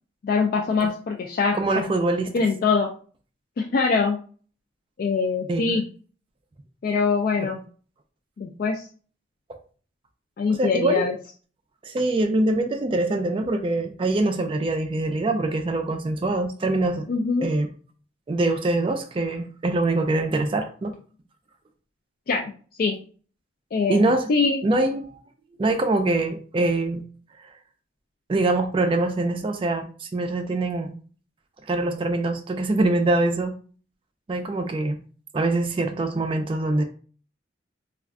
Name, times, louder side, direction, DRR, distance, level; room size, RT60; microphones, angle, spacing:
voice 1, 0.2-1.8 2.3-2.9 3.6-4.2 5.0-5.9 6.8-7.6 8.4-8.9 10.4-11.2 17.1-17.5 22.3-22.5 22.8-23.0 23.7-24.6, left 4 dB, 50° left, 1 dB, 0.3 m, -23 dB
voice 2, 1.5-2.3 5.5-5.8 7.4-7.5 10.5-11.1 11.8-17.1 17.4-17.7 18.3-21.0 23.9-24.3 24.6-25.2 25.6-27.0 28.3-30.9 31.7-33.6 34.3-35.0 35.3-36.8, right 2 dB, 30° right, 5 dB, 0.3 m, -24 dB
2.4 x 2.2 x 3.5 m, 0.40 s
head